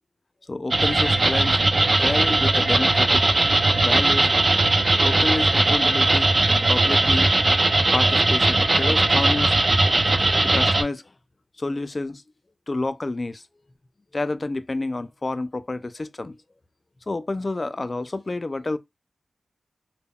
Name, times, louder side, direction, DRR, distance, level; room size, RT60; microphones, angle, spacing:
voice 1, 0.5-1.6 1.8-3.3 3.8-4.3 5.0-7.3 7.9-9.6 10.4-11.0 11.6-12.2 12.7-13.4 14.1-16.4 17.1-18.8, left 2 dB, 40° left, 0.3 m, -29 dB
sound 1, 0.7-10.8, right 2 dB, 45° right, 0.5 m, -19 dB
2.1 x 2.1 x 3.6 m
cardioid pair, 55°, 0 cm